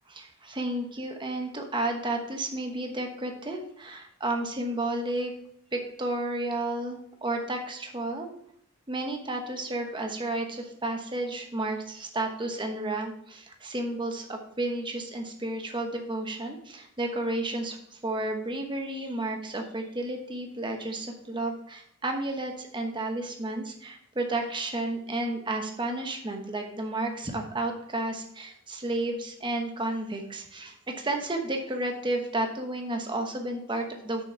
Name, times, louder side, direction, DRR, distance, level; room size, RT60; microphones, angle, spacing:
voice 1, 0.1-5.3 5.7-8.3 8.9-34.2, right 2 dB, 25° right, 3 dB, 1.0 m, -32 dB
6.6 x 6.1 x 4.3 m, 0.69 s
head